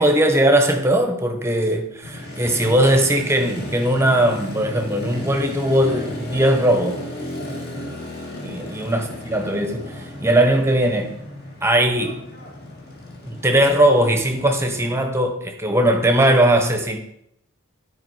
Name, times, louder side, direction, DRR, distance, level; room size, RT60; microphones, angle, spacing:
voice 1, 0.0-7.0 8.4-11.1 11.6-12.2 13.2-17.0, right 1 dB, 10° right, 5 dB, 0.9 m, -19 dB
Motorcycle, 2.0-15.0, left 1 dB, 45° left, 1.9 m, -34 dB
10.5 x 4.9 x 4.7 m, 0.76 s
head